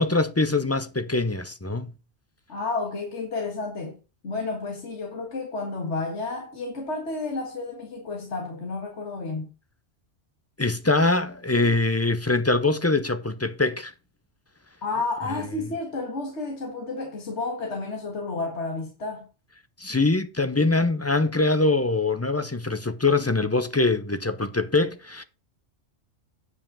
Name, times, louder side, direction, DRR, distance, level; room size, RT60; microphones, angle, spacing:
voice 1, 0.0-1.9 10.6-13.9 19.8-25.2, left 3 dB, 20° left, 0.4 m, -23 dB
voice 2, 2.5-4.0 4.2-9.5 14.8-19.3, left 3 dB, 65° left, 2.1 m, -31 dB
9.4 x 5.5 x 5.5 m
omnidirectional pair, 1.3 m